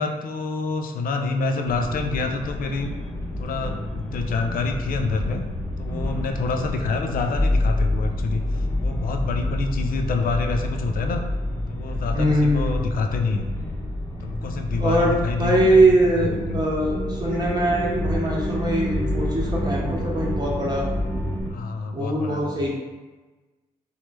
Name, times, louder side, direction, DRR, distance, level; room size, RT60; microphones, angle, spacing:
voice 1, 0.0-2.9 3.4-5.4 5.8-11.2 11.7-13.5 14.2-15.6 16.2-16.6 21.5-22.7, left 4 dB, 50° left, 5 dB, 0.4 m, -27 dB
sound 1, 1.7-21.5, left 1 dB, 15° left, 0.9 m, -28 dB
voice 2, 12.1-12.8 14.8-20.9 21.9-22.7, right 1 dB, 20° right, -3 dB, 1.0 m, -22 dB
3.2 x 2.0 x 3.0 m, 1.2 s
hypercardioid pair, 50°, 18 cm